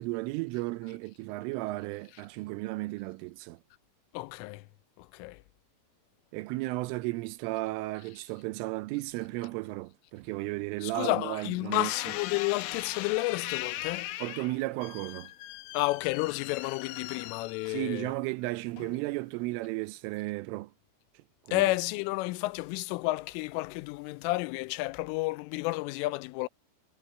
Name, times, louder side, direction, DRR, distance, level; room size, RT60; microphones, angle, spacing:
voice 1, 0.0-3.6 6.3-11.9 14.2-15.3 17.7-20.7 21.5-21.7, right 20 dB, 85° right, 3.3 m, -34 dB
voice 2, 4.1-4.6 5.0-5.4 10.8-14.1 15.7-18.1 21.5-26.5, left 20 dB, 90° left, 3.2 m, -31 dB
sound 1, 11.7-18.1 18.8-19.2, left 14 dB, 75° left, 2.8 m, -39 dB
omnidirectional pair, 5.6 m